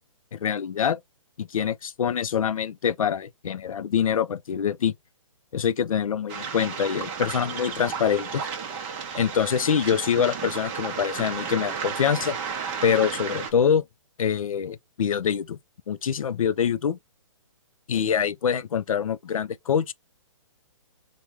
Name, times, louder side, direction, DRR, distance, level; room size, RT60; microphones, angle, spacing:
voice 1, 0.3-1.0 1.4-4.9 5.5-8.5 9.2-12.4 12.8-13.8 14.2-15.6 15.9-17.0 17.9-19.9, left 8 dB, 90° left, 0.4 m, -25 dB
Waves surf, 6.3-13.5, right 6 dB, 25° right, 0.6 m, -33 dB
3.5 x 2.1 x 2.8 m
hypercardioid pair, 150°, 17 cm